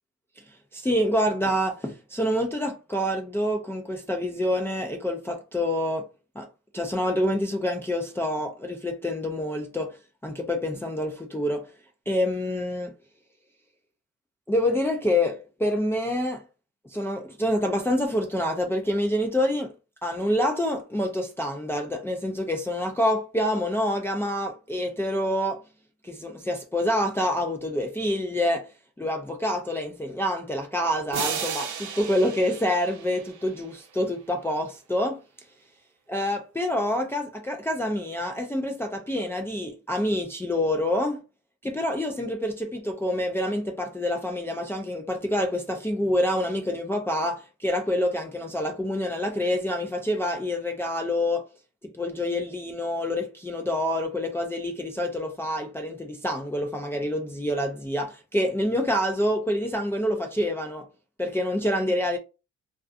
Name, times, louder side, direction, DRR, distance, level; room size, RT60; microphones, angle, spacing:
voice 1, 0.7-6.1 6.4-6.5 6.7-10.0 10.2-11.7 12.1-12.9 14.5-16.4 16.9-19.7 20.0-25.6 26.0-28.7 29.0-35.2 36.1-41.2 41.6-51.5 51.9-60.9 61.2-62.2, left 1 dB, 10° left, 0.4 m, -27 dB
sound 1, 31.1-33.8, right 7 dB, 75° right, 0.7 m, -34 dB
2.4 x 2.3 x 2.5 m
cardioid pair, 90°, 30 cm